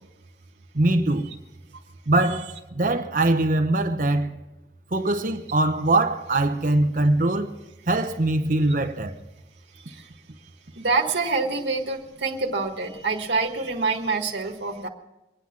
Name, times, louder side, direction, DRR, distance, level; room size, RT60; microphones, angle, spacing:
voice 1, 0.7-1.3 2.1-4.3 4.9-7.5 7.9-9.1, right 2 dB, 50° right, 0.9 m, -22 dB
voice 2, 9.7-10.1 10.7-14.9, right 4 dB, 80° right, 1.6 m, -26 dB
24.0 x 9.6 x 5.9 m
head